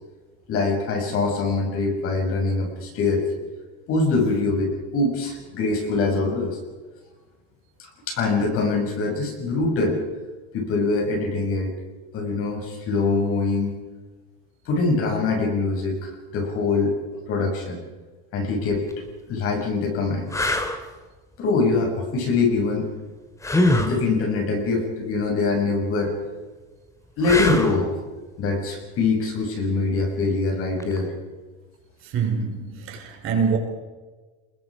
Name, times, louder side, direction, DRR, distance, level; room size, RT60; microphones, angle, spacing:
voice 1, 0.5-3.3 3.9-6.6 7.8-10.0 10.5-11.7 12.1-13.8 14.6-16.9 17.3-17.8 18.3-18.9 19.3-20.5 21.4-22.9 23.8-26.1 27.2-27.9 28.4-31.1, left 3 dB, 45° left, 6.9 m, -23 dB
sound 1, 18.7-18.9 19.6-19.7 20.3-20.8 23.4-24.0 27.2-27.8 30.8-31.0, left 1 dB, 10° left, 2.1 m, -22 dB
voice 2, 32.0-33.6, right 6 dB, 45° right, 5.0 m, -25 dB
29.5 x 21.5 x 5.0 m
cardioid pair, 155°, 30 cm